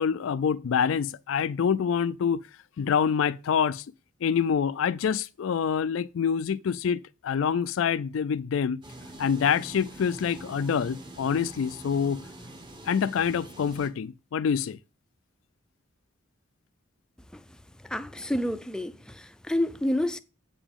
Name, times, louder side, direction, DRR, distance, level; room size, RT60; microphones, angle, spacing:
voice 1, 0.0-2.4 2.8-3.8 4.2-8.8 9.2-12.2 12.8-14.8, left 7 dB, 80° left, 0.4 m, -26 dB
sound 1, 8.8-13.9, right 1 dB, 25° right, 1.0 m, -45 dB
voice 2, 17.8-20.2, left 1 dB, 5° left, 0.4 m, -29 dB
8.0 x 6.9 x 3.6 m
head